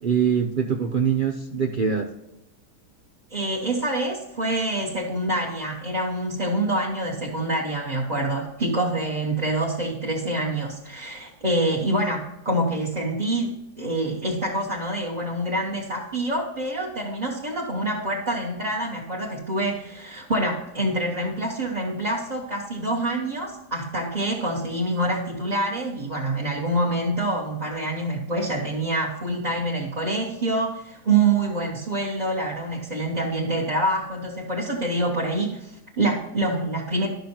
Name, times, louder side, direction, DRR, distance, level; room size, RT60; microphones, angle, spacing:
voice 1, 0.0-2.1, right 7 dB, 90° right, 4 dB, 0.4 m, -23 dB
voice 2, 3.3-37.1, right 2 dB, 25° right, -5 dB, 1.3 m, -26 dB
11.5 x 6.6 x 2.9 m, 0.89 s
omnidirectional pair, 1.8 m